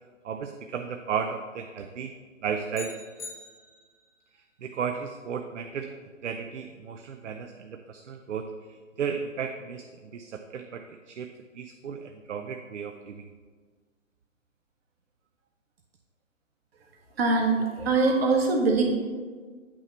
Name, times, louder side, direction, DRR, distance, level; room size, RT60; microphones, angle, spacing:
voice 1, 0.2-2.1 2.4-3.0 4.3-5.9 6.2-13.2, right 7 dB, 65° right, 7 dB, 0.5 m, -34 dB
sound 1, 2.7-4.1, left 4 dB, 75° left, 1.3 m, -43 dB
voice 2, 17.2-18.8, right 3 dB, 50° right, 2 dB, 1.3 m, -23 dB
8.5 x 3.0 x 5.6 m, 1.5 s
figure-of-eight pair, 130°, 38 cm